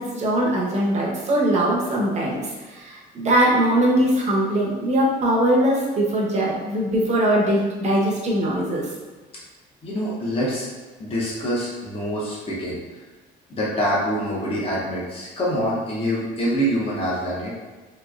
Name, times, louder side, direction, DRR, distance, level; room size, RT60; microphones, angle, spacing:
voice 1, 0.0-8.9, right 1 dB, 35° right, -3 dB, 0.9 m, -21 dB
voice 2, 9.8-10.7 11.0-12.8 13.5-17.6, equal, 30° left, -7 dB, 1.0 m, -25 dB
3.1 x 3.0 x 2.5 m, 1.3 s
cardioid pair, 115°, 19 cm